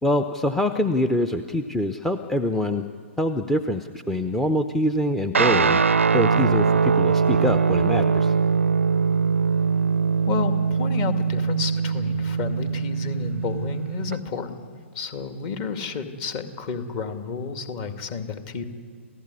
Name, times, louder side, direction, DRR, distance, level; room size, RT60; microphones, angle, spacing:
voice 1, 0.0-2.8 3.2-5.8 6.1-8.3, left 1 dB, 5° left, 8 dB, 0.7 m, -24 dB
Guitar, 5.3-14.2, right 5 dB, 70° right, 0.5 m, -22 dB
voice 2, 10.3-18.6, left 5 dB, 30° left, 7 dB, 2.2 m, -31 dB
28.5 x 15.5 x 9.7 m, 2.1 s
figure-of-eight pair, 120°, 7 cm